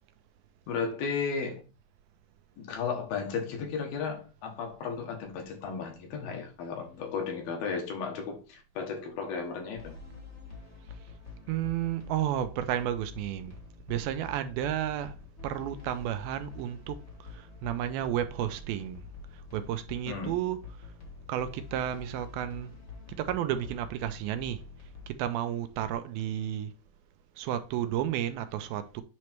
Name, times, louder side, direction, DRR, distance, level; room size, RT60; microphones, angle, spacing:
voice 1, 0.7-1.6 2.6-10.0 20.1-20.4, left 5 dB, 75° left, 3.2 m, -34 dB
sound 1, 9.7-25.1, left 4 dB, 50° left, 0.7 m, -47 dB
voice 2, 11.5-13.6 13.9-15.1 15.4-19.1 19.5-20.6 21.3-22.7 23.2-24.6 25.1-26.7 27.4-29.0, right 11 dB, 85° right, 2.5 m, -32 dB
8.3 x 3.2 x 4.5 m
omnidirectional pair, 4.3 m